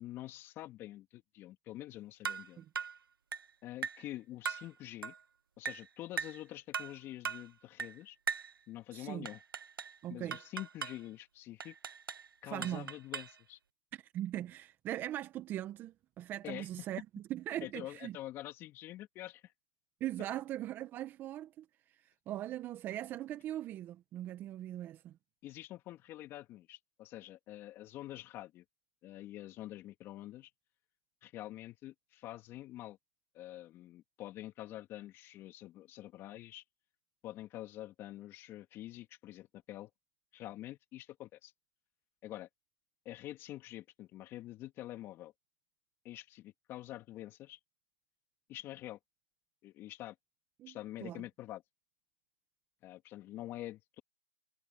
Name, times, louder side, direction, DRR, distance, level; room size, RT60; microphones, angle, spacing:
voice 1, 0.0-2.6 3.6-5.1 5.6-8.2 8.7-9.4 10.1-11.8 12.4-13.6 16.4-16.9 17.6-19.5 25.4-28.6 29.0-30.5 31.2-33.0 33.3-36.6 37.2-39.9 40.3-41.5 42.2-42.5 43.0-45.3 46.0-47.6 48.5-49.0 49.6-50.1 50.7-51.6 52.8-54.0, left 15 dB, 20° left, 3.1 m, -46 dB
sound 1, 2.2-2.5 2.8-3.0 3.3-3.5 3.8-4.1 4.5-4.7 5.0-5.2 5.7-5.9 6.2-6.4 6.7-7.0 7.2-7.5 7.8-8.0 8.3-8.5 9.3-10.0 10.3-11.0 11.6-12.3 12.6-13.4, right 6 dB, 70° right, 1.1 m, -39 dB
voice 2, 8.9-9.3 10.0-10.4 12.4-12.9 13.9-18.2 20.0-21.7 22.3-25.1 50.6-50.8 51.0-51.2, right 13 dB, 15° right, 1.7 m, -40 dB
hypercardioid pair, 145°, 12 cm